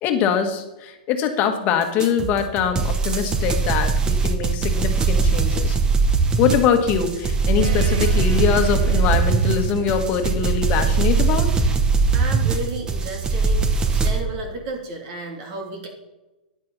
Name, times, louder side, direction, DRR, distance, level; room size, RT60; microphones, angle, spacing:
voice 1, 0.0-5.8 6.4-11.5, left 7 dB, 35° left, 6 dB, 1.6 m, -23 dB
sound 1, 2.0-14.2, right 4 dB, 15° right, 1.0 m, -21 dB
sound 2, 7.6-13.3, right 9 dB, 75° right, 1.1 m, -29 dB
voice 2, 12.1-15.9, right 3 dB, 45° right, 2 dB, 2.8 m, -32 dB
10.5 x 9.8 x 4.1 m, 1.0 s
hypercardioid pair, 140°, 5 cm